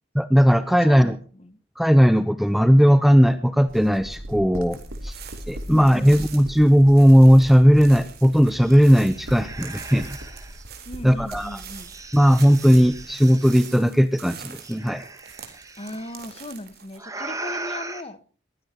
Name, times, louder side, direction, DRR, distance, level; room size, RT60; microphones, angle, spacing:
voice 1, 0.2-1.2 1.8-4.8 5.0-5.2 5.5-10.1 11.0-11.6 12.1-15.0, equal, ahead, 13 dB, 0.7 m, -17 dB
voice 2, 0.8-1.1 1.4-1.6 5.7-6.1 10.8-11.9 15.8-18.2, left 1 dB, 30° left, 14 dB, 1.4 m, -37 dB
sound 1, 3.7-13.1, equal, 85° right, 3.1 m, -40 dB
sound 2, 4.7-17.0, right 8 dB, 55° right, 3.9 m, -45 dB
sound 3, 7.8-7.9 8.2-10.6 11.4-13.7 14.6-16.1 17.0-18.0, right 2 dB, 15° right, 1.9 m, -38 dB
21.5 x 16.0 x 3.0 m, 0.39 s
head